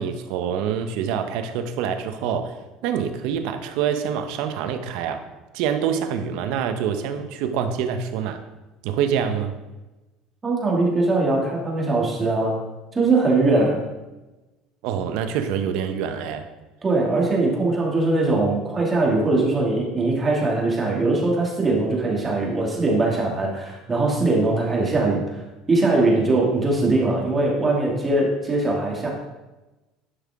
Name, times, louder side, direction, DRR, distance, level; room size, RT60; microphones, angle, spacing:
voice 1, 0.0-5.3 5.5-8.4 8.8-9.5 14.8-16.5, right 8 dB, 75° right, 8 dB, 0.9 m, -26 dB
voice 2, 10.4-12.6 12.9-13.8 16.8-25.4 25.7-29.1, right 2 dB, 25° right, -2 dB, 2.4 m, -21 dB
11.0 x 5.8 x 3.7 m, 1.1 s
supercardioid pair, 120°, 0 cm